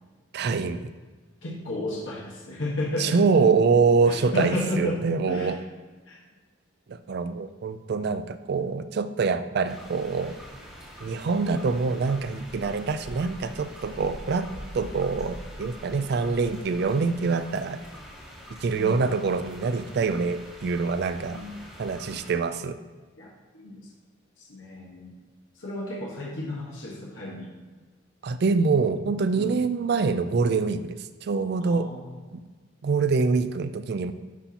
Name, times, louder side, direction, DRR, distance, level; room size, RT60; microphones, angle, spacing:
voice 1, 0.3-0.9 3.0-5.6 6.9-10.3 11.0-14.5 14.7-17.8 18.6-21.4 21.8-22.8 28.2-31.9 32.3-32.4 32.8-34.1, right 4 dB, 55° right, 11 dB, 0.4 m, -25 dB
voice 2, 1.4-3.2 4.1-5.5 6.1-6.2 18.7-19.1 21.3-21.5 23.2-23.9 24.4-25.1 25.5-27.5 29.4-29.6 31.6-32.1, left 1 dB, 80° left, -5 dB, 1.2 m, -33 dB
sound 1, 9.6-22.3, equal, 5° right, 2.2 m, -44 dB
11.0 x 4.3 x 2.8 m, 1.4 s
head